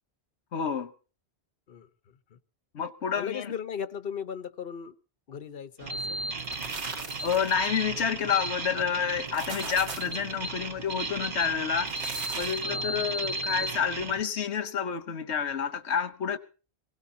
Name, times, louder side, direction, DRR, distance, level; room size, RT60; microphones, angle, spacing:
voice 1, 0.5-0.9 2.7-3.5 7.2-11.9 12.4-16.4, left 7 dB, 80° left, 1.2 m, -29 dB
voice 2, 3.2-4.9 5.3-6.2 12.6-13.0, left 7 dB, 60° left, 1.2 m, -37 dB
sound 1, 5.8-14.2, right 3 dB, 50° right, 1.4 m, -34 dB
sound 2, 6.2-7.7 9.1-10.2 11.7-12.7, right 3 dB, 85° right, 1.9 m, -39 dB
24.0 x 17.0 x 2.8 m
omnidirectional pair, 1.1 m